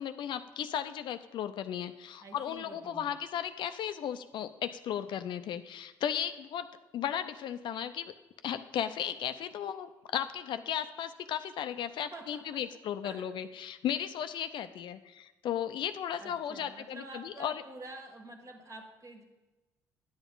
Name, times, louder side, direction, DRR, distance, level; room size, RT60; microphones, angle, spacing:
voice 1, 0.0-6.7 6.9-8.1 8.4-17.6, left 9 dB, 65° left, 10 dB, 0.5 m, -35 dB
voice 2, 2.2-3.1 12.1-12.6 13.0-13.3 16.2-19.2, right 2 dB, 35° right, 3 dB, 1.7 m, -48 dB
10.5 x 7.2 x 3.9 m, 1.1 s
supercardioid pair, 65°, 9 cm